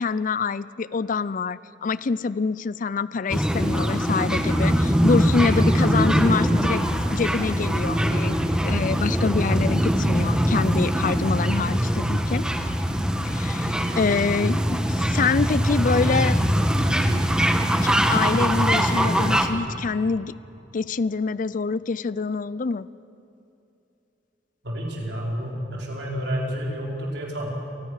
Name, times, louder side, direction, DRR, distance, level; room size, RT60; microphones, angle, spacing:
voice 1, 0.0-6.8 7.1-8.4 8.6-12.5 13.2-16.4 17.1-17.2 17.8-20.3 20.7-22.9, left 4 dB, 50° left, 18 dB, 0.5 m, -26 dB
sound 1, 3.3-19.5, equal, 5° right, 1.4 m, -22 dB
voice 2, 24.6-27.5, equal, 70° right, -1 dB, 4.6 m, -30 dB
29.0 x 19.5 x 6.5 m, 2.8 s
head